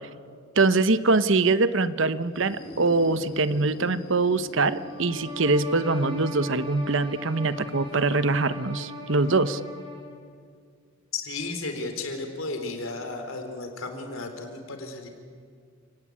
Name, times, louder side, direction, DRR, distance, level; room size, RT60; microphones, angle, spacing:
voice 1, 0.6-9.6, right 3 dB, 65° right, 14 dB, 0.9 m, -23 dB
sound 1, 2.2-9.9, equal, 50° left, 3.8 m, -45 dB
sound 2, 4.8-10.2, left 2 dB, 25° right, 4.7 m, -38 dB
voice 2, 11.1-15.1, left 3 dB, 80° left, 6 dB, 3.8 m, -34 dB
30.0 x 19.0 x 8.6 m, 2.1 s
head